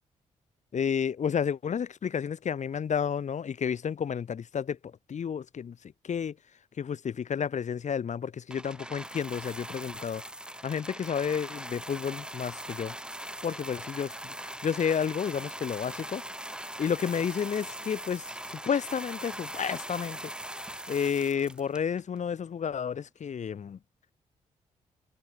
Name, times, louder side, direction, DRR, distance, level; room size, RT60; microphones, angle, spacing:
voice 1, 0.7-5.8 6.0-6.3 6.8-10.2 10.6-12.9 13.4-16.2 16.8-20.3 20.9-23.8, left 7 dB, 55° left, 1.1 m, -31 dB
sound 1, 8.5-22.2 22.9-23.0, right 1 dB, 5° right, 2.1 m, -41 dB
supercardioid pair, 50°, 15 cm